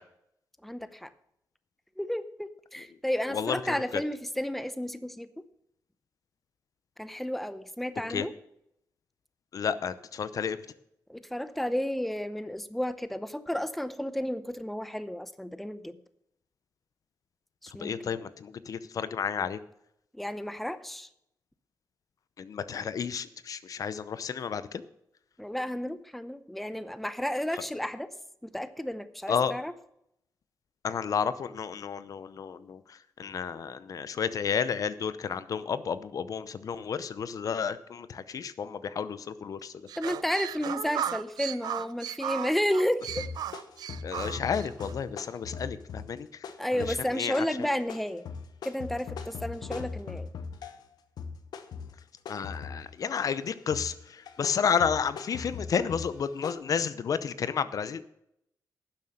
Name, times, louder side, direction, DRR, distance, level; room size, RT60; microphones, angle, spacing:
voice 1, 0.6-1.1 2.0-5.3 7.0-8.3 11.1-16.0 17.6-18.3 20.1-21.1 25.4-28.1 28.4-29.7 40.0-43.3 46.6-48.3 48.6-50.3, equal, ahead, 13 dB, 0.7 m, -32 dB
voice 2, 3.3-3.8 8.1-8.2 9.5-10.6 17.8-19.6 22.4-24.8 29.3-29.5 30.8-32.8 33.2-39.7 44.0-46.3 46.7-47.5 52.3-58.0, left 7 dB, 60° left, 14 dB, 0.7 m, -31 dB
sound 1, 39.9-44.9, right 10 dB, 90° right, 0.4 m, -36 dB
sound 2, 43.1-50.9 51.2-53.4 53.7-56.5, left 5 dB, 90° left, 0.9 m, -40 dB
11.5 x 7.5 x 6.6 m, 0.77 s
cardioid pair, 105°, 7 cm